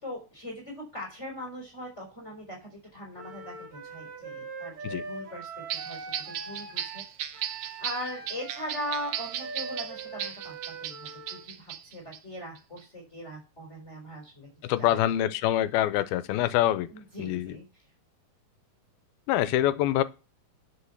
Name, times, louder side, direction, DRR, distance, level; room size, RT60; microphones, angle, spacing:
voice 1, 0.0-7.0 7.8-14.5 14.8-15.0 16.9-17.6, equal, 15° left, 4.6 m, -40 dB
Wind instrument woodwind instrument, 3.1-11.5, right 3 dB, 50° right, 3.9 m, -42 dB
sound 1, 5.7-12.2 12.6-12.8, right 10 dB, 80° right, 1.4 m, -36 dB
voice 2, 14.6-16.9 17.2-17.6 19.3-20.0, left 13 dB, 85° left, 2.6 m, -25 dB
10.0 x 7.2 x 7.2 m
omnidirectional pair, 4.3 m